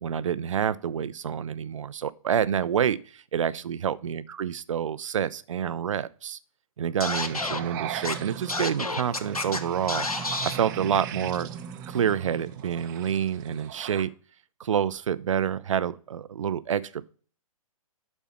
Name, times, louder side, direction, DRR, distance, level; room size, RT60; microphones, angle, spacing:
voice 1, 0.0-6.4 6.8-11.5 11.9-14.1 14.6-17.1, right 8 dB, 60° right, 0.6 m, -28 dB
Scratching (performance technique), 7.0-7.6 8.0-8.1 8.5-9.6 9.9-10.6, left 3 dB, 85° left, 1.0 m, -29 dB
sound 1, 7.0-13.7, right 7 dB, 10° right, 0.3 m, -41 dB
sound 2, 7.4-14.0, right 11 dB, 35° right, 0.9 m, -41 dB
12.0 x 4.5 x 5.7 m
figure-of-eight pair, 120°, 18 cm